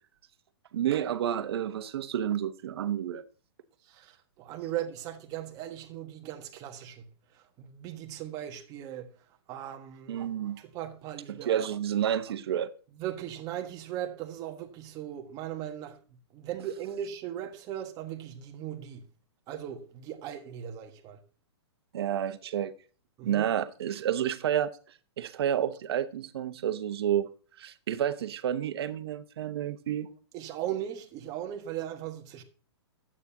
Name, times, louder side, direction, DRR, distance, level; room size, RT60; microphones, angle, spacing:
voice 1, 0.7-3.2 10.1-10.6 11.3-12.7 21.9-22.7 23.2-24.7 25.2-27.3 27.6-30.1, right 10 dB, 65° right, 1.0 m, -30 dB
voice 2, 3.8-9.1 9.5-11.7 13.0-16.0 16.3-19.0 19.5-21.2 23.2-23.5 30.3-32.4, right 11 dB, 25° right, 1.3 m, -38 dB
11.5 x 8.6 x 2.8 m
hypercardioid pair, 150°, 14 cm